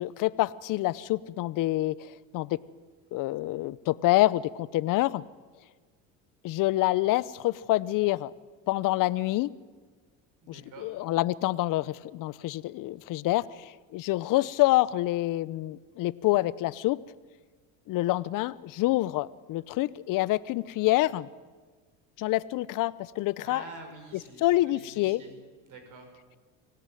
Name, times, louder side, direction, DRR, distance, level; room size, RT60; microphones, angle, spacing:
voice 1, 0.0-2.6 3.1-5.2 6.4-8.3 8.7-9.5 10.5-17.0 17.9-21.3 22.2-23.6 24.4-25.2, left 17 dB, 60° left, 19 dB, 0.9 m, -27 dB
voice 2, 10.4-10.9 23.4-25.4 25.6-26.1, right 3 dB, 60° right, 5 dB, 6.5 m, -47 dB
25.0 x 17.5 x 9.3 m, 1.4 s
supercardioid pair, 95°, 36 cm